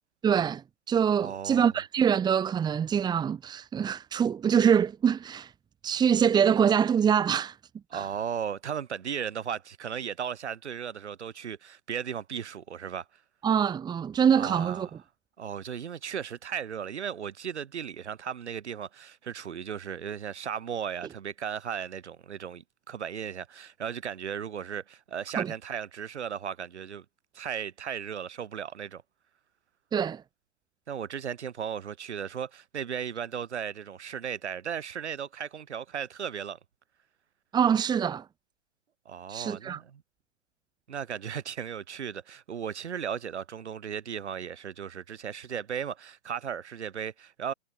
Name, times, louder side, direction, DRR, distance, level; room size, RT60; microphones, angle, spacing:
voice 1, 0.2-0.6 0.9-5.5 5.8-7.5 7.9-8.1 13.4-14.9 25.4-25.5 29.9-30.2 37.5-38.2 39.3-39.8, right 8 dB, 10° right, 2.6 m, -24 dB
voice 2, 1.2-1.7 7.9-13.0 14.4-14.9 15.4-27.0 27.3-29.0 30.9-36.6 39.1-40.0 40.9-47.5, right 8 dB, 60° right, 7.7 m, -36 dB
hypercardioid pair, 135°, 38 cm